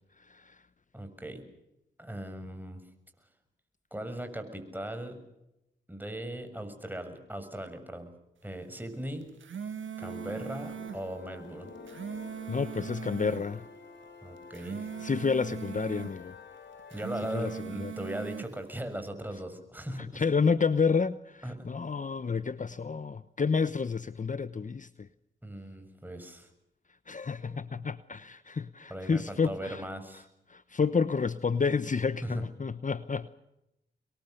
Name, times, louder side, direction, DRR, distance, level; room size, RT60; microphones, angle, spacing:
voice 1, 0.9-1.4 2.0-2.8 3.9-5.2 5.9-8.1 8.4-9.3 10.0-11.7 14.2-14.9 16.9-20.3 21.4-21.7 25.4-26.5 27.5-27.8 28.9-30.2 32.2-32.4, right 1 dB, 10° right, 7 dB, 6.6 m, -39 dB
sound 1, 9.2-11.0 11.7-13.5 14.4-16.2 16.8-18.5, right 8 dB, 75° right, 1.9 m, -40 dB
sound 2, 10.0-17.6, left 4 dB, 65° left, 3.9 m, -49 dB
voice 2, 12.5-13.6 15.0-16.3 17.3-17.5 17.8-17.9 20.1-25.1 27.1-29.8 30.5-33.3, left 5 dB, 40° left, 15 dB, 0.9 m, -30 dB
26.0 x 22.0 x 6.6 m, 0.86 s
cardioid pair, 45°, 20 cm